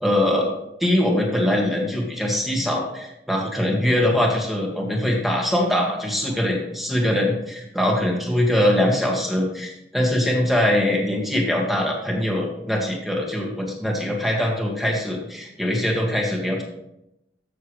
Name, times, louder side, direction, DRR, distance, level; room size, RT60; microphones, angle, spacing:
voice 1, 0.0-0.5 0.8-16.6, left 1 dB, ahead, -1 dB, 1.9 m, -22 dB
13.5 x 7.2 x 3.3 m, 0.85 s
head